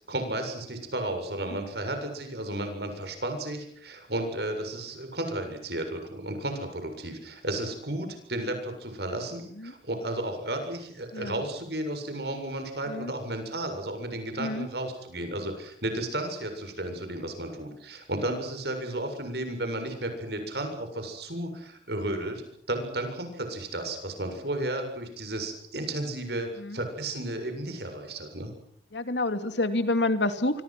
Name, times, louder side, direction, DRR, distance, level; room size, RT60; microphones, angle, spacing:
voice 1, 0.1-22.4 22.7-28.5, right 1 dB, 65° right, 6 dB, 7.4 m, -33 dB
voice 2, 28.9-30.6, left 2 dB, 80° left, 9 dB, 2.8 m, -28 dB
26.0 x 26.0 x 6.2 m, 0.66 s
head